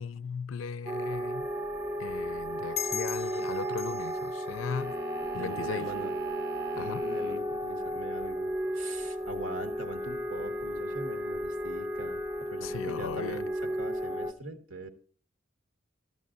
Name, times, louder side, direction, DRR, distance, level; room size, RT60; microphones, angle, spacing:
voice 1, 0.0-1.5 2.0-5.0 5.3-5.9 6.8-7.0 12.6-13.4, left 6 dB, 85° left, 0.4 m, -37 dB
sound 1, 0.9-14.3, equal, 15° right, 0.6 m, -34 dB
sound 2, 2.8-5.9, left 9 dB, 35° left, 0.5 m, -40 dB
sound 3, 4.7-7.5, right 3 dB, 50° right, 0.8 m, -44 dB
voice 2, 5.4-6.1 6.7-13.5 13.8-14.9, right 1 dB, 80° right, 1.6 m, -42 dB
14.0 x 11.0 x 2.5 m
head